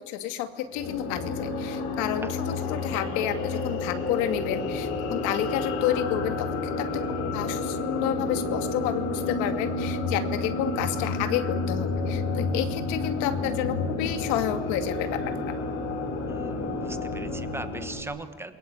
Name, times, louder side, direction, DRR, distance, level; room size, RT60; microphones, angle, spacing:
voice 1, 0.1-15.6, left 11 dB, 85° left, 8 dB, 2.4 m, -30 dB
sound 1, 0.7-18.0, left 3 dB, 60° left, 4.3 m, -30 dB
voice 2, 16.3-18.6, right 2 dB, 10° right, 9 dB, 1.3 m, -39 dB
28.5 x 22.5 x 8.2 m, 1.4 s
cardioid pair, 175°, 29 cm